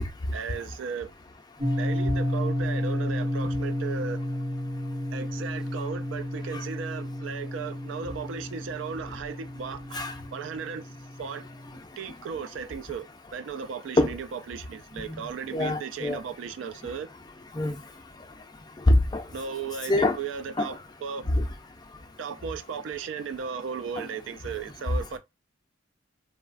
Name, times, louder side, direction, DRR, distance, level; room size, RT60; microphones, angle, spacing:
voice 1, 0.3-1.1 1.8-4.2 5.1-10.0 10.3-10.9 11.2-11.4 12.0-13.1 13.3-17.1 19.3-21.3 22.2-25.2, right 6 dB, 70° right, 0.3 m, -36 dB
sound 1, 1.6-11.8, left 1 dB, 40° right, 0.9 m, -32 dB
voice 2, 15.5-16.2 17.5-17.8 18.9-19.2 19.9-20.2 20.6-20.7 21.3-21.4 24.0-24.1, left 1 dB, 20° left, 0.4 m, -24 dB
3.1 x 2.1 x 2.4 m
head